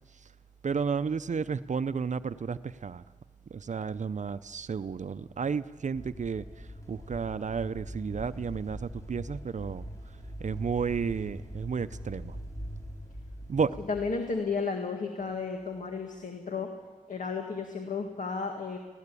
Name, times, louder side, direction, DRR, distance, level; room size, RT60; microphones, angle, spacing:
voice 1, 0.6-3.0 3.5-9.8 10.4-12.4 13.5-13.8, right 6 dB, 60° right, 13 dB, 0.6 m, -32 dB
sound 1, 5.9-14.3, equal, 20° left, 3.9 m, -42 dB
voice 2, 13.9-16.7 17.1-18.8, left 4 dB, 65° left, 4 dB, 1.8 m, -33 dB
19.0 x 16.5 x 8.3 m, 1.4 s
cardioid pair, 65°, 14 cm